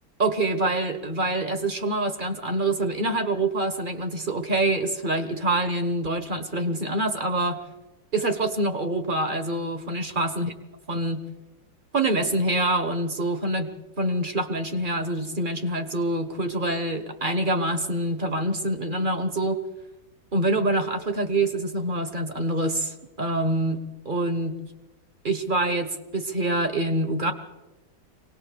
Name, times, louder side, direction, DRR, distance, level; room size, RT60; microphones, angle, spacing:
voice 1, 0.2-7.6 8.1-10.5 10.9-11.2 11.9-13.7 14.0-19.6 20.3-24.6 25.2-27.3, right 2 dB, 30° right, 8 dB, 1.3 m, -26 dB
24.0 x 18.5 x 6.8 m, 1.0 s
omnidirectional pair, 2.1 m